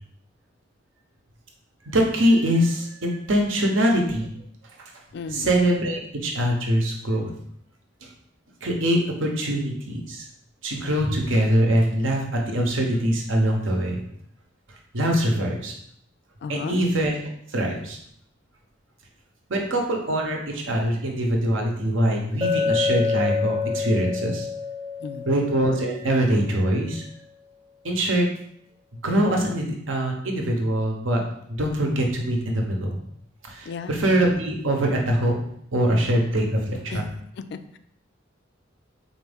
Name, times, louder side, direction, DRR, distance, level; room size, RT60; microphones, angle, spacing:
voice 1, 1.8-4.3 4.8-4.9 5.3-7.3 8.6-10.3 10.6-14.0 14.9-15.7 16.5-17.2 17.5-18.0 19.5-24.5 25.3-27.1 27.8-28.3 29.0-31.2 31.5-33.0 33.4-35.4 35.7-37.0, right 1 dB, 80° right, 0.9 m, -23 dB
voice 2, 5.1-5.6 16.4-16.8 25.0-25.3 33.7-34.0 36.9-37.1 37.4-37.8, left 5 dB, 60° left, 0.3 m, -34 dB
Chink clink, 22.4-26.4, left 5 dB, 25° right, 0.6 m, -27 dB
4.3 x 2.6 x 3.4 m
head